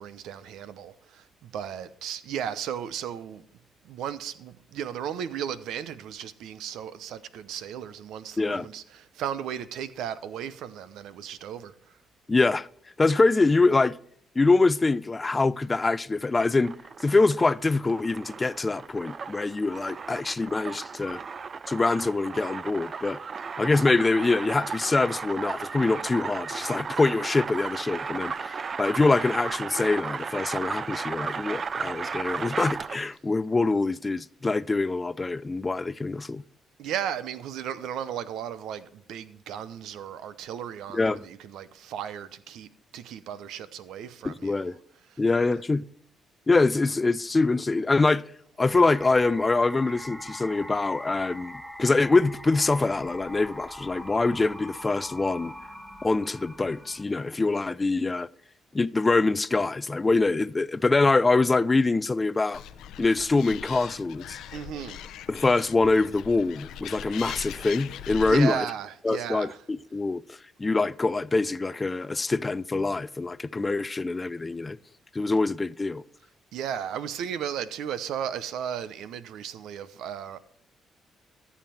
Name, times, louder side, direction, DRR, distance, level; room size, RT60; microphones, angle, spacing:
voice 1, 0.0-3.4 3.8-11.7 36.8-44.7 45.1-45.2 64.5-65.0 68.2-69.6 76.5-80.4, right 9 dB, 85° right, 0.8 m, -35 dB
voice 2, 12.3-12.7 13.0-14.0 14.4-16.7 17.0-21.2 21.7-23.2 23.6-36.4 40.9-41.2 44.2-44.8 45.2-45.8 46.5-48.2 48.6-55.5 56.0-58.3 58.7-62.6 63.0-64.4 65.3-68.7 69.0-74.8 75.1-76.0, left 3 dB, 25° left, 0.4 m, -24 dB
sound 1, 16.5-33.1, right 5 dB, 40° right, 0.4 m, -35 dB
sound 2, 48.6-57.0, equal, 10° right, 1.8 m, -42 dB
Animal, 62.5-68.3, left 10 dB, 85° left, 0.7 m, -40 dB
14.0 x 7.4 x 4.3 m
cardioid pair, 90°, 0 cm